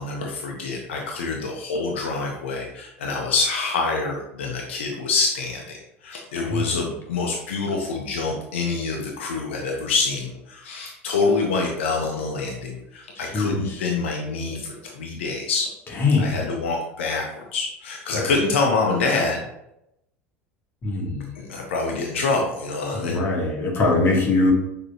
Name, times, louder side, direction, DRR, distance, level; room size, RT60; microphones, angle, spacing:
voice 1, 0.0-15.7 16.2-19.4 21.3-23.2, left 4 dB, 65° left, 0 dB, 0.6 m, -26 dB
voice 2, 6.3-6.7 13.2-13.8 16.0-16.5 18.1-18.3 20.8-21.3 22.9-24.5, left 3 dB, 35° left, 0 dB, 1.2 m, -22 dB
6.2 x 2.8 x 2.7 m, 0.83 s
figure-of-eight pair, 70°, 7 cm